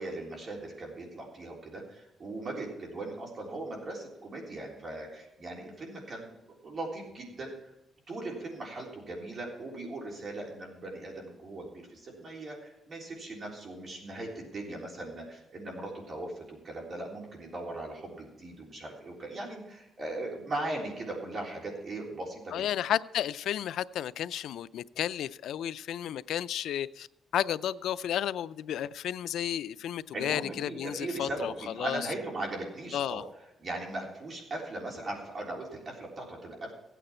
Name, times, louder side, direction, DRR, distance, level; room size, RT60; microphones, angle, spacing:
voice 1, 0.0-6.3 6.6-7.5 8.1-22.6 30.1-33.2 33.6-36.7, right 2 dB, 40° right, 3.5 m, -39 dB
voice 2, 22.5-27.1 27.3-32.1 32.9-33.2, left 10 dB, 85° left, 0.4 m, -32 dB
16.0 x 9.1 x 4.3 m
cardioid pair, 135°, 0 cm